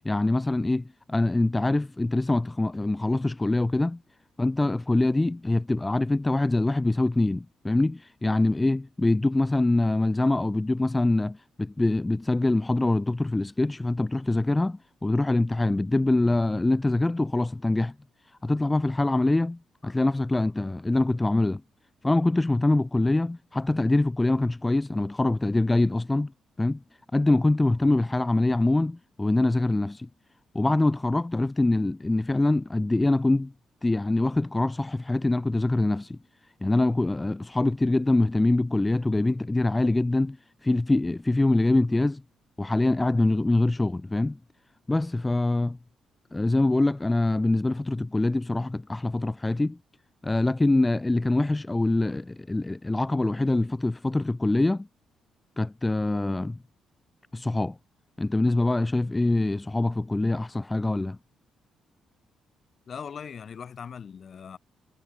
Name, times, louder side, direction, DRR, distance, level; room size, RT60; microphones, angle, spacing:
voice 1, 0.0-4.0 4.4-17.9 18.4-21.6 22.0-26.3 26.6-26.8 27.1-30.1 30.5-33.5 33.8-36.2 36.6-40.4 40.6-42.2 42.6-44.4 44.9-45.8 46.3-49.8 50.2-54.9 55.6-56.6 57.3-57.8 58.2-61.2, left 2 dB, 15° left, 1.0 m, -24 dB
voice 2, 62.9-64.6, left 7 dB, 50° left, 6.3 m, -40 dB
cardioid pair, 90°, 0 cm